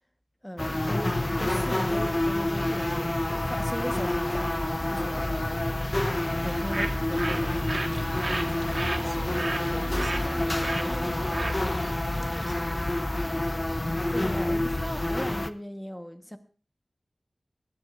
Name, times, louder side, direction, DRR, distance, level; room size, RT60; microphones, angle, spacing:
voice 1, 0.4-5.4 6.4-7.7 14.1-16.4, equal, 5° left, 1.3 m, -38 dB
sound 1, 0.6-15.5, left 1 dB, 30° left, 0.7 m, -28 dB
Bird, 6.4-12.6, right 2 dB, 55° right, 1.7 m, -35 dB
voice 2, 8.2-13.4, right 1 dB, 25° right, 3.5 m, -44 dB
26.5 x 11.0 x 2.6 m
wide cardioid pair, 70°, 0 cm